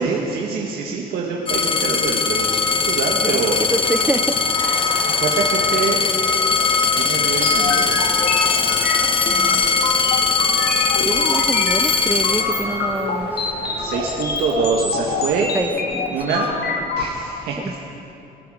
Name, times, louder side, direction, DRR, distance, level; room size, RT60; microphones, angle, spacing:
voice 1, 0.0-3.6 5.0-6.0 6.9-8.0 13.8-15.5 16.1-16.5 17.0-17.8, right 5 dB, 70° right, -2 dB, 1.6 m, -24 dB
sound 1, 1.5-13.2 13.9-14.5, left 5 dB, 30° left, 1.0 m, -20 dB
sound 2, 2.4-14.1, right 2 dB, 35° right, 3.3 m, -36 dB
voice 2, 3.1-4.8 9.2-9.8 11.0-13.5 15.5-16.2 17.6-17.8, right 2 dB, 10° right, 12 dB, 0.6 m, -27 dB
sound 3, 7.4-17.0, left 4 dB, 65° left, 2.1 m, -26 dB
25.0 x 9.3 x 5.0 m, 2.8 s
cardioid pair, 110°, 17 cm